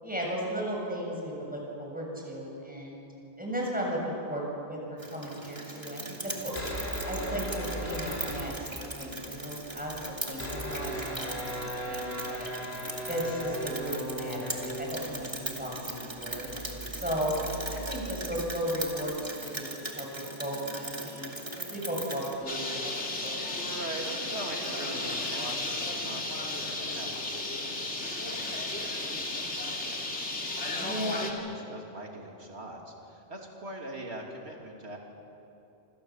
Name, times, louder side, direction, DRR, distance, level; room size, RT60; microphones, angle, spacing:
voice 1, 0.0-3.0 3.4-6.5 7.0-11.5 11.9-12.5 13.1-16.5 16.9-17.5 17.7-22.9 23.2-23.4 30.8-31.3, equal, 5° right, -2 dB, 7.2 m, -35 dB
Rain, 5.0-22.3, right 1 dB, 25° right, 2.9 m, -39 dB
sound 1, 6.4-9.1 9.4-9.5 9.7-19.1, right 1 dB, 60° left, 4.6 m, -38 dB
Bird, 22.5-31.3, left 2 dB, 80° left, 3.2 m, -34 dB
voice 2, 23.2-30.1 30.8-35.0, right 1 dB, 70° right, 0 dB, 3.3 m, -43 dB
27.0 x 27.0 x 7.4 m, 2.9 s
omnidirectional pair, 1.2 m